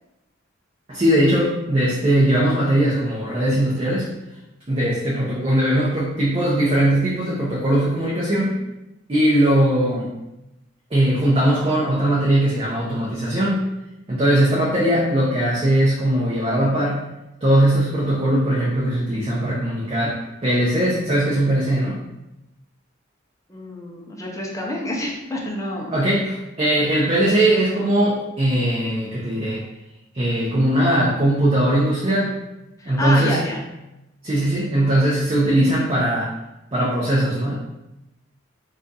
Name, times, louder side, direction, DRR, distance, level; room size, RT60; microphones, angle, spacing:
voice 1, 0.9-4.1 4.7-8.6 9.1-10.1 10.9-13.7 14.1-17.1 17.4-22.0 25.9-29.6 30.1-32.4 32.9-33.4 34.2-36.3 36.7-37.5, right 1 dB, 30° right, -7 dB, 0.6 m, -20 dB
voice 2, 23.5-25.9 32.8-33.6, left 1 dB, 15° left, -1 dB, 0.5 m, -28 dB
2.5 x 2.4 x 3.9 m, 0.94 s
head